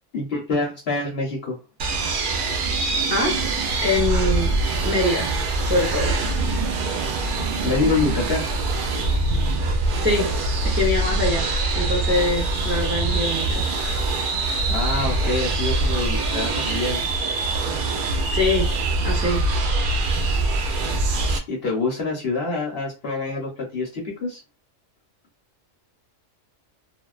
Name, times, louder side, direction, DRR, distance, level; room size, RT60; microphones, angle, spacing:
voice 1, 0.1-1.6 7.6-8.5 14.7-17.1 21.5-24.4, left 3 dB, 55° left, -1 dB, 0.8 m, -26 dB
sound 1, 1.8-21.4, right 2 dB, 75° right, 0.4 m, -23 dB
voice 2, 3.8-4.5 4.8-5.3 5.6-6.2 10.0-10.3 10.6-11.4 11.7-13.6 18.3-18.7 19.0-19.4, left 2 dB, 15° right, -2 dB, 0.5 m, -23 dB
2.3 x 2.2 x 2.3 m, 0.30 s
omnidirectional pair, 1.4 m